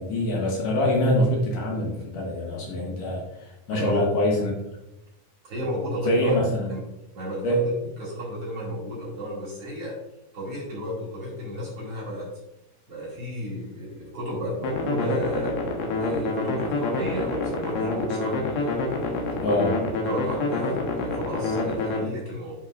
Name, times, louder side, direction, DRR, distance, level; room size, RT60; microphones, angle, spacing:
voice 1, 0.0-4.5 6.0-6.7 7.4-7.6 19.4-19.7, left 1 dB, 65° left, -1 dB, 2.5 m, -24 dB
voice 2, 3.7-4.2 5.4-6.4 6.7-6.8 7.1-7.6 8.0-10.0 10.3-12.3 12.9-15.6 16.0-19.7 20.0-22.5, equal, 45° right, -6 dB, 2.9 m, -33 dB
sound 1, 14.6-22.0, left 2 dB, 85° left, 3.0 m, -27 dB
9.8 x 5.3 x 2.5 m, 0.88 s
omnidirectional pair, 4.2 m